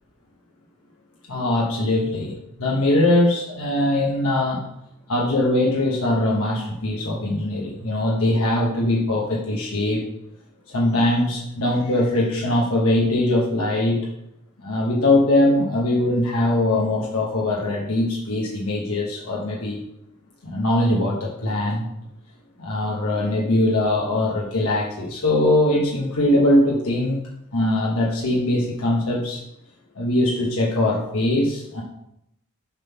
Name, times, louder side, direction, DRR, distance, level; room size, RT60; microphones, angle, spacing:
voice 1, 1.3-4.7 5.1-10.0 10.7-14.0 14.6-19.8 20.4-21.9 22.6-27.2 27.5-29.4 29.9-31.8, left 1 dB, 70° left, -3 dB, 1.1 m, -21 dB
7.2 x 3.8 x 5.8 m, 0.81 s
head